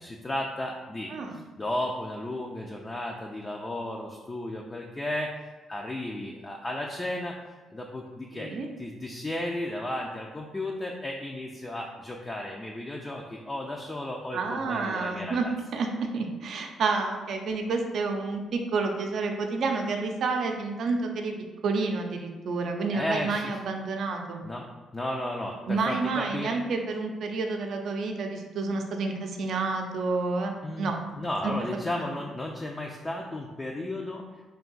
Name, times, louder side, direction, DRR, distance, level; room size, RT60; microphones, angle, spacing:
voice 1, 0.0-1.1 1.6-5.3 5.7-7.4 7.7-8.5 8.8-15.5 22.9-23.5 24.4-24.7 24.9-26.6 30.6-34.3, left 1 dB, 20° left, 0 dB, 0.4 m, -34 dB
voice 2, 1.1-1.4 8.3-8.7 14.3-21.3 21.6-24.4 25.6-31.0 31.4-31.5, right 4 dB, 65° right, 3 dB, 0.5 m, -29 dB
3.4 x 2.6 x 3.8 m, 1.2 s
cardioid pair, 90°, 0 cm